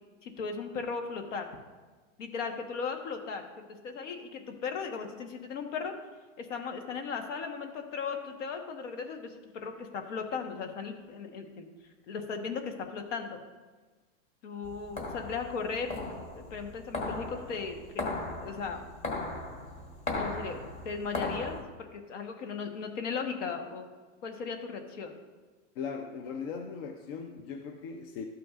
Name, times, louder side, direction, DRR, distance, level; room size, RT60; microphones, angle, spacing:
voice 1, 0.2-1.5 2.2-3.4 3.8-5.9 6.4-11.7 12.1-13.4 14.4-18.0 18.4-18.8 20.1-20.6 20.8-21.6 21.9-23.8 24.2-25.2, left 5 dB, 70° left, 5 dB, 1.3 m, -37 dB
sound 1, 14.6-21.6, left 2 dB, 15° left, 1.1 m, -37 dB
voice 2, 25.8-28.3, left 6 dB, 50° left, 4 dB, 0.7 m, -39 dB
12.5 x 5.9 x 2.5 m, 1.3 s
supercardioid pair, 140°, 38 cm